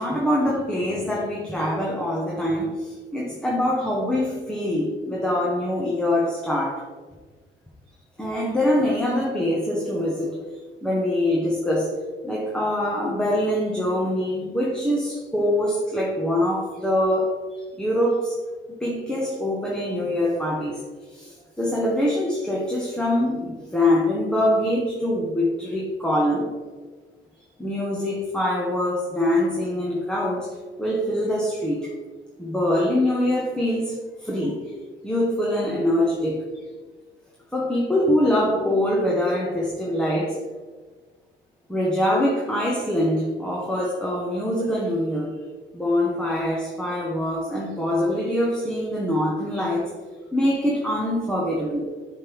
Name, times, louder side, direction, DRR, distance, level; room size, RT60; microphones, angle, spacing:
voice 1, 0.0-6.8 8.2-10.4 10.8-12.0 12.2-18.4 18.8-20.8 21.1-26.5 27.6-31.9 32.4-34.6 35.0-36.5 37.5-40.4 41.7-45.4 45.7-49.9 50.3-51.8, left 1 dB, 5° left, -4 dB, 1.2 m, -24 dB
7.3 x 3.6 x 4.6 m, 1.4 s
cardioid pair, 90°, 20 cm